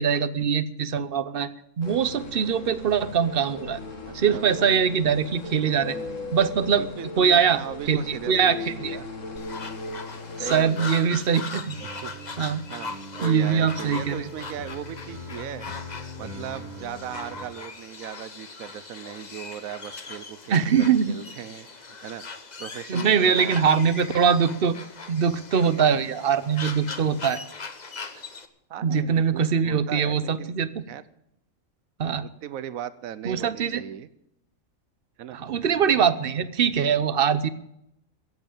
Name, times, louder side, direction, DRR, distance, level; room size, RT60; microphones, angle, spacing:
voice 1, 0.0-1.5 1.8-3.8 4.1-6.0 6.3-6.8 7.2-7.6 7.9-9.0 10.4-11.8 12.4-12.6 13.2-14.2 20.5-21.2 22.9-24.8 25.1-27.4 28.8-30.7 32.0-32.3 33.2-33.8 35.3-37.5, right 7 dB, 50° right, 15 dB, 0.9 m, -22 dB
sound 1, 1.8-10.6, left 3 dB, 65° left, 2.0 m, -37 dB
voice 2, 4.1-4.8 5.8-6.4 6.8-9.1 10.4-10.9 11.7-12.1 12.7-12.9 13.2-15.7 16.2-22.2 22.6-23.6 28.7-30.6 30.9-31.0 32.2-34.1 35.2-35.4, right 10 dB, 85° right, 15 dB, 1.2 m, -38 dB
sound 2, 9.4-28.5, left 4 dB, 35° left, 1.1 m, -40 dB
sound 3, 11.7-17.5, equal, 30° right, 1.9 m, -41 dB
15.5 x 8.1 x 8.8 m, 0.79 s
omnidirectional pair, 1.4 m